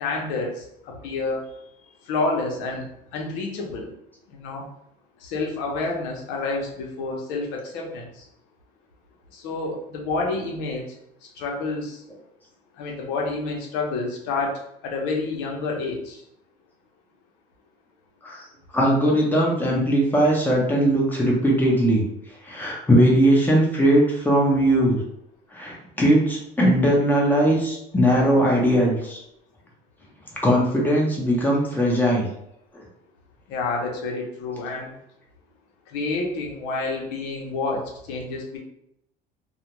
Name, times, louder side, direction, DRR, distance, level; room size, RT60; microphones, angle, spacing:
voice 1, 0.0-1.5 2.1-3.9 4.3-4.6 5.2-8.1 9.3-10.9 11.4-12.0 12.8-16.2 33.5-34.9 35.9-38.6, left 3 dB, 85° left, 0 dB, 0.7 m, -29 dB
voice 2, 18.7-22.0 22.4-25.0 25.5-29.2 30.4-32.3, equal, 10° left, -3 dB, 0.8 m, -19 dB
2.4 x 2.1 x 2.9 m, 0.77 s
cardioid pair, 120°, 17 cm